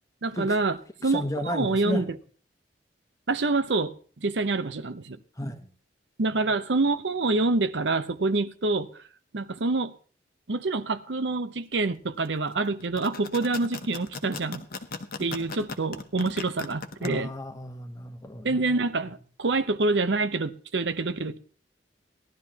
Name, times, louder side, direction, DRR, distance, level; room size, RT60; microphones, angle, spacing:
voice 1, 0.2-0.8 1.0-2.2 3.3-4.0 4.2-5.2 6.2-9.0 9.3-9.9 10.5-14.6 15.2-17.3 18.4-21.4, right 3 dB, 80° right, 0.8 m, -26 dB
voice 2, 1.0-2.0 5.4-5.7 17.0-18.6, left 1 dB, 20° left, 1.1 m, -33 dB
sound 1, 12.8-17.1, left 4 dB, 55° left, 1.1 m, -37 dB
18.0 x 12.0 x 2.9 m
head